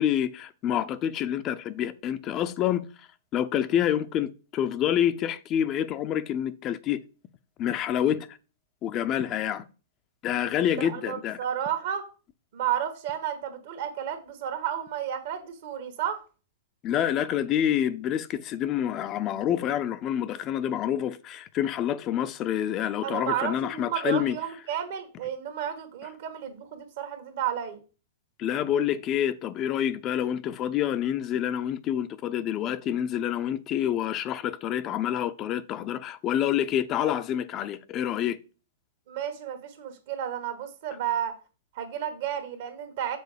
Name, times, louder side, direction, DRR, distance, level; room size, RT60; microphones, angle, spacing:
voice 1, 0.0-7.0 7.6-8.4 8.8-9.6 10.2-11.4 16.8-24.4 28.4-38.4, left 10 dB, 35° left, 0.5 m, -27 dB
voice 2, 10.8-12.1 12.5-16.2 23.0-27.8 39.1-41.3 41.7-43.2, right 9 dB, 60° right, 1.5 m, -32 dB
6.9 x 3.8 x 5.0 m
hypercardioid pair, 120°, 0 cm